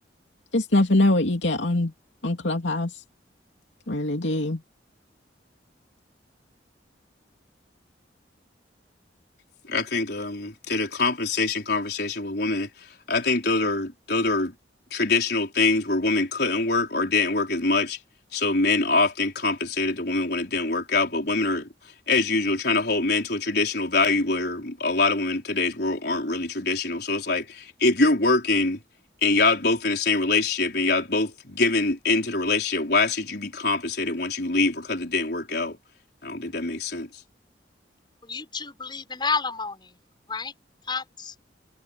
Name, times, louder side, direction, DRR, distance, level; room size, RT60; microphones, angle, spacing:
voice 1, 0.5-1.9 2.2-2.9 3.9-4.6, left 1 dB, 80° left, 2.7 m, -23 dB
voice 2, 9.7-14.5 14.9-18.0 18.3-21.7 22.1-28.8 29.2-35.8 36.2-37.1, left 3 dB, 60° left, 4.9 m, -24 dB
voice 3, 38.2-39.9 40.3-40.5 40.9-41.3, left 4 dB, 25° left, 6.8 m, -30 dB
head